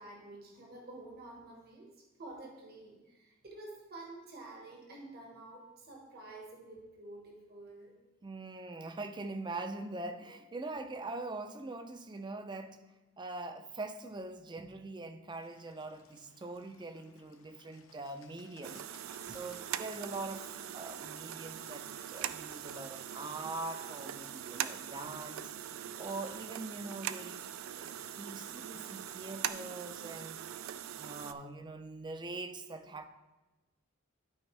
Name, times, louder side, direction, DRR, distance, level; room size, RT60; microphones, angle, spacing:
voice 1, 0.0-1.9 2.2-7.9, right 2 dB, 50° right, -1 dB, 1.4 m, -49 dB
voice 2, 8.2-12.8 13.2-18.9 19.3-25.5 26.0-27.4 27.8-33.1, right 2 dB, 20° right, 8 dB, 0.5 m, -43 dB
Bird, 15.3-29.5, left 5 dB, 85° left, 0.7 m, -62 dB
sound 1, 18.6-31.3, right 10 dB, 80° right, 0.4 m, -42 dB
12.0 x 4.4 x 3.3 m, 1.1 s
head